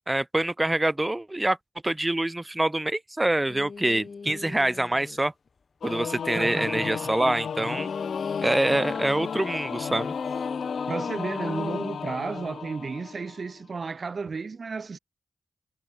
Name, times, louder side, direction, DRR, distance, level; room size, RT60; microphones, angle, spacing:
voice 1, 0.1-1.6 1.8-5.3 5.8-7.9 8.4-10.1, right 1 dB, 20° right, 2.6 m, -25 dB
sound 1, 3.5-5.3 7.5-12.6, left 5 dB, 55° left, 2.6 m, -37 dB
Singing / Musical instrument, 5.8-13.6, left 7 dB, 80° left, 2.8 m, -34 dB
voice 2, 6.3-7.1 10.9-15.0, right 4 dB, 55° right, 2.4 m, -33 dB
cardioid pair, 60°, 0 cm